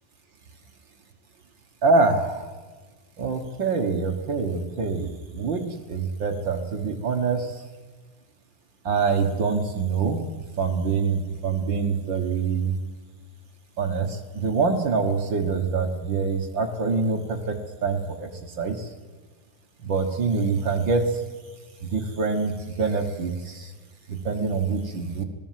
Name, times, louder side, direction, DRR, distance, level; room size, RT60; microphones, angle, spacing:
voice 1, 1.8-2.5 3.2-7.6 8.8-10.2 10.6-12.8 13.8-18.9 19.8-21.2 21.8-23.7 24.1-25.2, right 4 dB, 50° right, 4 dB, 1.4 m, -25 dB
27.0 x 18.0 x 7.6 m, 1.4 s
omnidirectional pair, 4.0 m